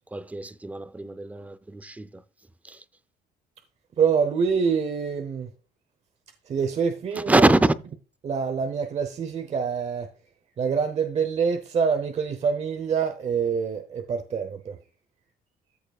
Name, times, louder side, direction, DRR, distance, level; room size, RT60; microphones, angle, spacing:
voice 1, 0.1-2.2 2.6-2.8 7.1-7.7, right 2 dB, 10° right, 0.5 m, -24 dB
voice 2, 4.0-5.5 6.5-7.4 8.2-10.1 10.6-14.8, right 6 dB, 40° right, 0.9 m, -25 dB
13.5 x 6.7 x 2.4 m
cardioid pair, 110°, 17 cm